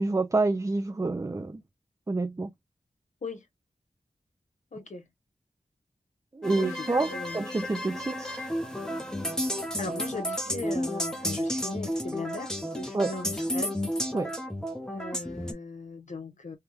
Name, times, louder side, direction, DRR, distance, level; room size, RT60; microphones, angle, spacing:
voice 1, 0.0-1.6 2.1-2.5 6.3-7.1 7.3-8.5 12.9-13.2 14.1-14.3, right 3 dB, 25° right, 0.4 m, -28 dB
voice 2, 4.7-5.1 6.6-7.6 9.1-9.2 9.8-13.8 14.9-16.6, left 3 dB, 70° left, 1.0 m, -38 dB
sound 1, 6.4-15.5, equal, 5° left, 0.8 m, -32 dB
3.5 x 2.3 x 3.0 m
wide cardioid pair, 70°, 13 cm